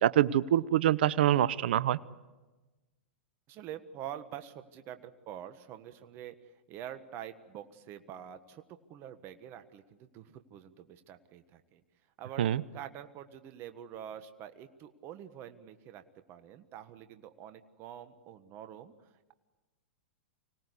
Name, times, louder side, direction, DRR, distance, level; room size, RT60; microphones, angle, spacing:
voice 1, 0.0-2.0 12.4-12.6, right 12 dB, 70° right, 18 dB, 0.8 m, -25 dB
voice 2, 3.5-6.3 6.7-8.6 8.9-11.8 12.2-12.4 12.7-16.0 16.3-18.9, right 10 dB, 40° right, 9 dB, 1.5 m, -46 dB
25.5 x 18.0 x 8.3 m, 1.2 s
hypercardioid pair, 110°, 6 cm